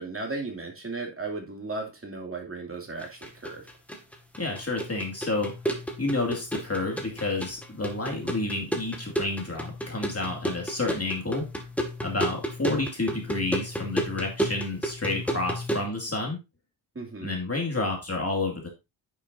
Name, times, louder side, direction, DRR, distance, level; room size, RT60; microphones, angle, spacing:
voice 1, 0.0-3.7 16.9-17.3, right 3 dB, 30° right, 1 dB, 2.6 m, -35 dB
sound 1, 3.0-15.9, equal, 5° left, 1.7 m, -33 dB
voice 2, 4.4-5.5 6.0-11.5 12.0-16.4 17.2-18.7, left 2 dB, 30° left, 1 dB, 2.3 m, -30 dB
9.9 x 6.4 x 2.6 m, 0.25 s
wide cardioid pair, 115°, 46 cm